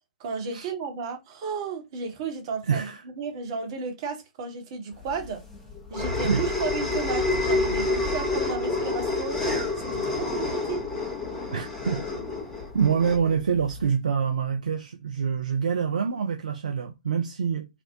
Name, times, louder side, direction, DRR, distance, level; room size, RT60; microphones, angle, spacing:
voice 1, 0.2-2.9 3.2-5.4 5.9-9.4 9.8-10.8, right 5 dB, 40° right, 0.8 m, -33 dB
voice 2, 2.7-3.0 6.2-6.4 11.5-12.0 12.7-17.7, right 6 dB, 65° right, 0.4 m, -26 dB
sound 1, 5.1-13.9, left 3 dB, 10° left, 0.6 m, -28 dB
2.5 x 2.0 x 2.7 m
figure-of-eight pair, 115°, 4 cm